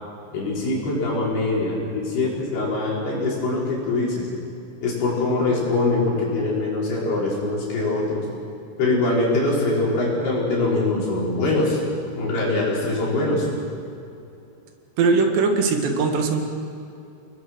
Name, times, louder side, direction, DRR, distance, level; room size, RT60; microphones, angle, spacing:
voice 1, 0.3-4.3 4.8-8.3 8.8-11.8 12.1-13.5, left 2 dB, 65° left, -5 dB, 7.6 m, -23 dB
voice 2, 15.0-16.4, right 4 dB, 80° right, 3 dB, 4.2 m, -20 dB
29.0 x 20.5 x 6.4 m, 2.6 s
omnidirectional pair, 4.9 m